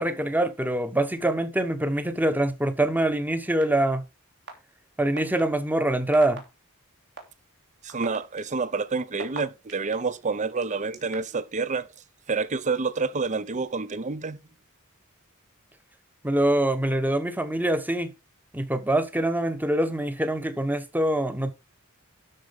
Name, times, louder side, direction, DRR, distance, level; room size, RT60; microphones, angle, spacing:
voice 1, 0.0-4.0 5.0-6.4 16.2-18.1 18.5-21.5, right 1 dB, 10° right, 1.0 m, -24 dB
sound 1, 3.6-3.7 4.5-4.6 5.2-5.4 6.1-6.4 7.2-7.3 7.9-9.9 10.6-11.4, right 4 dB, 50° right, 3.1 m, -37 dB
voice 2, 7.8-11.9 12.3-14.4, right 4 dB, 35° right, 0.7 m, -28 dB
12.5 x 5.0 x 5.3 m
head